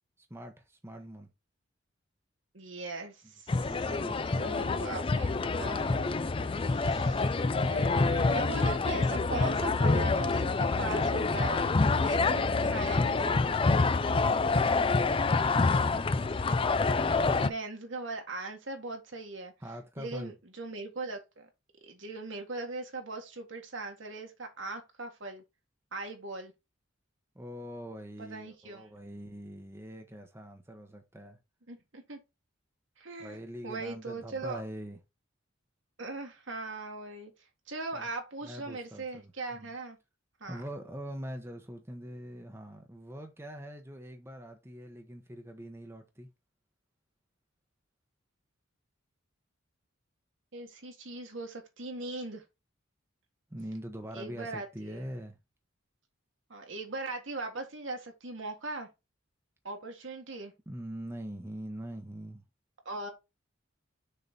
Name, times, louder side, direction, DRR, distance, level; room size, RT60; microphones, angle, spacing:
voice 1, 0.2-1.3 3.7-4.7 15.0-16.0 19.6-20.3 27.3-31.4 33.2-35.0 37.9-38.1 38.4-39.7 40.5-46.3 53.5-55.4 60.7-62.4, equal, 15° right, 0.9 m, -43 dB
voice 2, 2.5-3.9 4.4-6.2 6.7-13.7 17.4-19.5 20.0-21.5 21.8-25.4 25.9-26.5 28.2-28.9 31.7-32.2 33.0-34.6 36.0-37.3 37.7-40.0 40.4-40.6 50.5-52.4 54.1-55.0 56.5-58.9 59.6-60.5 62.9-63.1, right 3 dB, 65° right, 1.8 m, -40 dB
sound 1, 3.5-17.5, left 3 dB, 25° left, 0.4 m, -27 dB
6.7 x 3.9 x 4.2 m
head